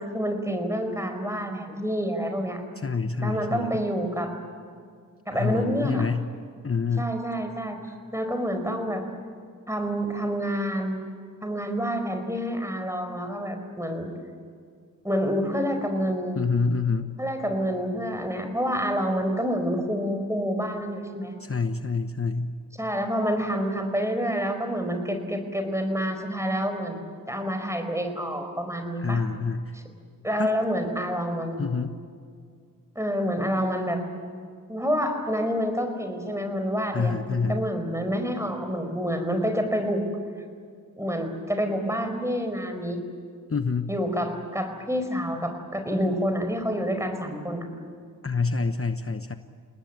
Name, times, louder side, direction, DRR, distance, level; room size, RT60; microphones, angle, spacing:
voice 1, 0.0-2.6 3.2-4.3 5.3-6.1 7.0-9.0 9.7-11.0 11.4-14.1 15.0-16.4 17.2-21.3 22.8-27.0 27.3-29.2 29.7-29.8 30.2-31.6 32.9-34.0 34.7-40.0 41.0-43.0 43.9-47.7, equal, 10° right, 6 dB, 4.7 m, -28 dB
voice 2, 2.8-3.8 5.3-6.2 6.6-7.1 16.4-17.1 21.4-22.5 29.0-29.7 30.4-30.5 31.6-31.9 36.9-37.6 43.5-43.9 48.2-49.4, left 4 dB, 45° left, 8 dB, 1.0 m, -27 dB
30.0 x 19.0 x 9.4 m, 2.1 s
wide cardioid pair, 75°, 32 cm